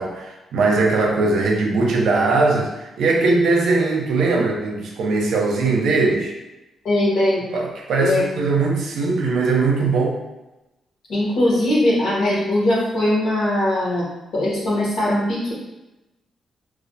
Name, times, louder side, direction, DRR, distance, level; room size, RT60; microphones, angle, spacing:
voice 1, 0.0-6.3 7.5-10.2, right 3 dB, 75° right, 0 dB, 0.5 m, -20 dB
voice 2, 6.8-7.4 8.0-8.2 11.1-14.0 14.3-15.5, left 1 dB, 60° left, -6 dB, 0.9 m, -20 dB
2.3 x 2.1 x 2.6 m, 0.99 s
cardioid pair, 155°, 0 cm